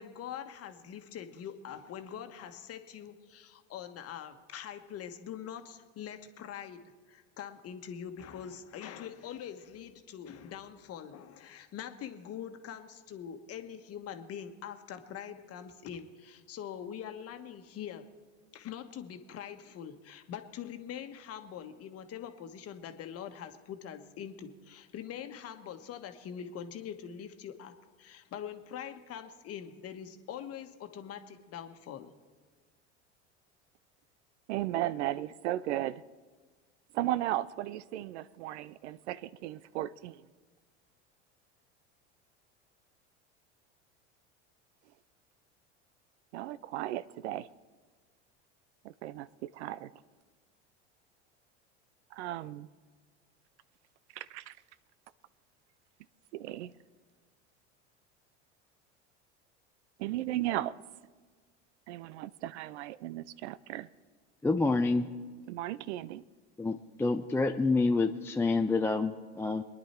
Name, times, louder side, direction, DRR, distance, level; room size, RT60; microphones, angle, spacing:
voice 1, 0.0-18.1 18.5-32.1, left 9 dB, 45° left, 1.3 m, -43 dB
voice 2, 34.5-36.0 36.9-40.2 46.3-47.5 48.8-49.9 52.1-52.7 54.1-54.5 56.3-56.7 60.0-60.8 61.9-63.9 65.5-66.2, right 14 dB, 75° right, 0.5 m, -35 dB
voice 3, 64.4-65.1 66.6-69.6, left 3 dB, 5° left, 0.5 m, -28 dB
23.5 x 10.5 x 4.4 m
hypercardioid pair, 85°, 35 cm